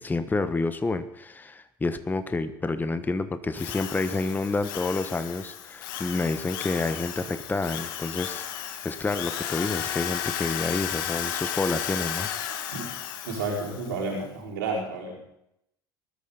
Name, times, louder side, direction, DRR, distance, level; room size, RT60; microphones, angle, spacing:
voice 1, 0.0-12.3, left 3 dB, 15° left, 11 dB, 1.2 m, -29 dB
Drill, 3.6-14.0, left 10 dB, 70° left, 1.4 m, -34 dB
voice 2, 13.2-15.2, right 3 dB, 80° right, -5 dB, 4.7 m, -31 dB
20.0 x 13.0 x 4.0 m, 0.80 s
hypercardioid pair, 70°, 11 cm